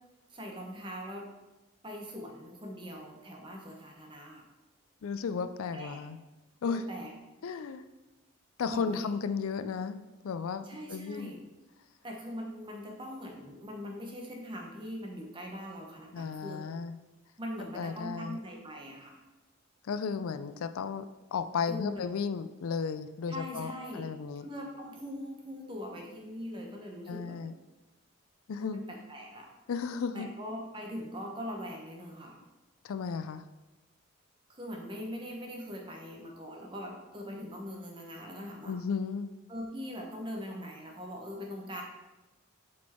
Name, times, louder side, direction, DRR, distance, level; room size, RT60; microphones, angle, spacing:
voice 1, 0.3-1.3 1.8-4.4 5.7-6.0 6.6-7.1 8.7-9.1 10.6-11.4 12.0-16.6 17.4-19.2 21.7-22.0 23.3-24.1 24.4-27.4 28.6-29.5 30.1-32.4 34.5-38.8 39.5-41.8, equal, 20° right, 0 dB, 1.0 m, -41 dB
voice 2, 5.0-6.2 6.6-6.8 7.4-7.8 8.6-11.3 16.1-16.9 17.7-18.4 19.9-21.0 21.3-24.5 27.1-27.5 28.5-28.8 29.7-30.3 32.8-33.4 38.7-39.3, left 5 dB, 80° left, 11 dB, 0.4 m, -34 dB
7.3 x 4.5 x 4.3 m, 1.1 s
head